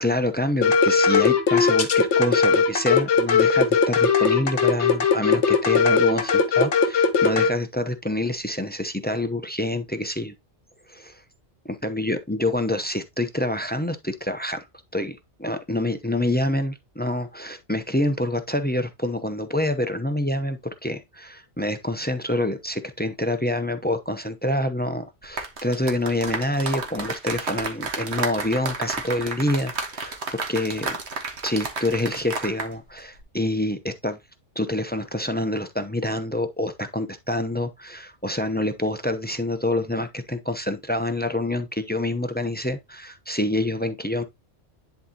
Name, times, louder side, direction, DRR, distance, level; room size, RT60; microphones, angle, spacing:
voice 1, 0.0-10.3 10.9-11.2 11.6-14.7 14.9-31.0 31.4-34.2 34.6-44.2, left 1 dB, 10° left, 0.5 m, -27 dB
sound 1, 0.6-7.5, left 5 dB, 70° left, 1.4 m, -19 dB
sound 2, 25.2-32.7 33.0-33.2, right 4 dB, 65° right, 1.6 m, -31 dB
10.5 x 4.2 x 2.8 m
omnidirectional pair, 1.2 m